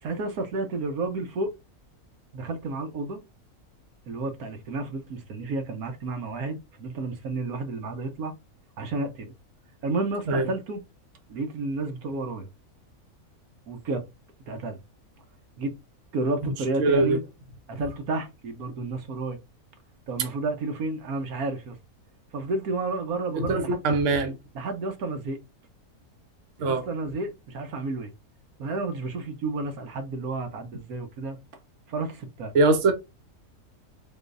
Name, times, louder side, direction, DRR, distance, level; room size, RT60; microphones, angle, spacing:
voice 1, 0.0-1.5 2.3-3.2 4.1-8.3 8.8-9.3 9.8-10.8 11.3-12.5 13.7-14.1 14.5-14.8 15.6-15.8 16.1-17.2 17.7-19.4 20.1-21.8 22.3-23.8 24.5-25.4 26.6-28.1 28.6-31.4 31.9-32.5, right 3 dB, 75° right, 1.3 m, -31 dB
voice 2, 16.8-17.2 23.4-24.4 26.6-26.8 32.5-32.9, right 3 dB, 60° right, 1.2 m, -22 dB
3.9 x 3.8 x 2.5 m
omnidirectional pair, 1.6 m